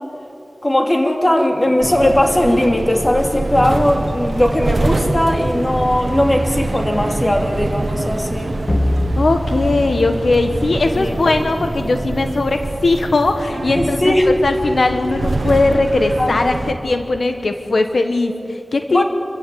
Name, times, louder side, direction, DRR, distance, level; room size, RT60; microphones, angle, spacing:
voice 1, 0.6-8.5 11.0-11.2 13.7-14.3 16.2-16.6 18.9-19.0, left 1 dB, 30° left, 2 dB, 2.8 m, -18 dB
sound 1, 1.8-16.7, right 2 dB, 80° right, 1.5 m, -24 dB
sound 2, 8.7-11.3, left 1 dB, 55° left, 1.9 m, -23 dB
voice 2, 9.2-14.1 14.4-19.0, left 2 dB, 85° left, 6 dB, 1.2 m, -18 dB
26.5 x 15.5 x 8.5 m, 3.0 s
wide cardioid pair, 70°, 0 cm